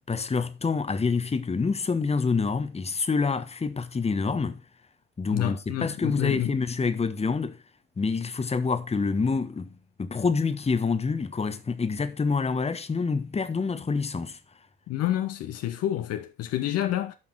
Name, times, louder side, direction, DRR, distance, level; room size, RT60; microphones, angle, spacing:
voice 1, 0.1-4.6 5.2-7.6 8.0-9.7 10.0-14.4, left 4 dB, 20° left, 1.3 m, -27 dB
voice 2, 5.3-6.6 14.9-17.1, left 12 dB, 50° left, 1.1 m, -28 dB
12.5 x 5.8 x 4.3 m
figure-of-eight pair, 55°, 31 cm